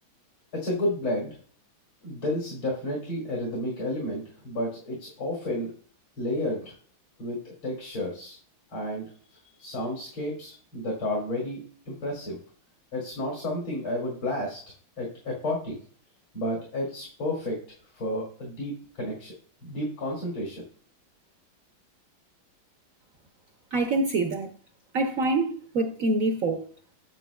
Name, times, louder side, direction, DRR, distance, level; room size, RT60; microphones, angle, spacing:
voice 1, 0.5-1.3 2.0-5.7 6.2-6.7 7.2-8.4 8.7-9.0 9.6-12.4 12.9-14.6 15.0-15.8 16.3-17.6 18.0-19.3 19.6-20.6, left 1 dB, 75° left, 3.1 m, -31 dB
voice 2, 23.7-24.5 24.9-26.7, right 2 dB, 60° right, 0.9 m, -25 dB
9.1 x 7.8 x 2.3 m
omnidirectional pair, 2.2 m